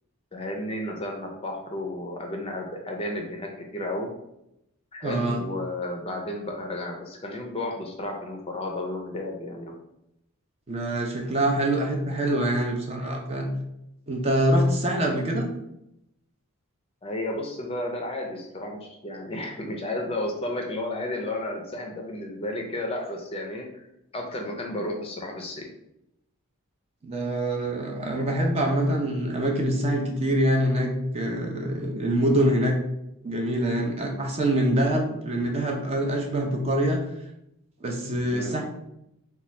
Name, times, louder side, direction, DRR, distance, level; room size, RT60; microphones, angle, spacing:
voice 1, 0.3-4.1 4.9-9.6 17.0-23.7 24.1-25.6 38.3-38.5, left 1 dB, 25° left, 1 dB, 0.5 m, -32 dB
voice 2, 5.0-5.4 10.7-13.5 14.1-15.5 27.0-32.8 33.2-37.0 37.8-38.6, right 1 dB, 25° right, 1 dB, 0.5 m, -25 dB
3.0 x 2.3 x 4.2 m, 0.83 s
head